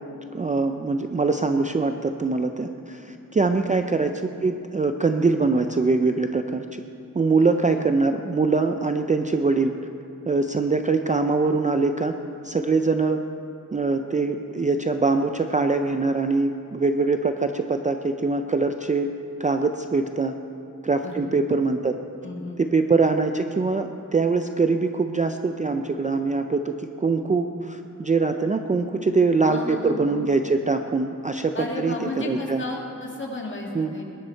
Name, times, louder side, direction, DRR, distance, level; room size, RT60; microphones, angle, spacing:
voice 1, 0.3-6.8 7.1-9.7 10.3-12.1 12.4-13.2 13.7-19.1 19.4-20.3 20.8-22.0 22.6-31.9 32.3-32.6 33.7-33.9, right 3 dB, 25° right, 6 dB, 0.4 m, -23 dB
voice 2, 21.0-21.4 22.2-22.9 29.5-30.2 31.5-34.0, left 2 dB, 35° left, -1 dB, 2.0 m, -33 dB
20.5 x 10.5 x 4.5 m, 2.6 s
wide cardioid pair, 165°, 34 cm